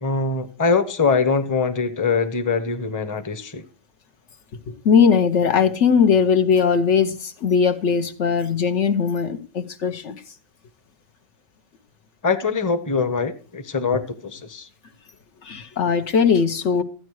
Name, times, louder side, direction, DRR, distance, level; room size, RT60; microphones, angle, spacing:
voice 1, 0.0-3.6 12.2-14.7, left 4 dB, 20° left, 0.8 m, -23 dB
voice 2, 4.7-10.2 15.4-16.8, left 6 dB, 75° left, 1.3 m, -19 dB
14.0 x 9.5 x 4.7 m
omnidirectional pair, 1.2 m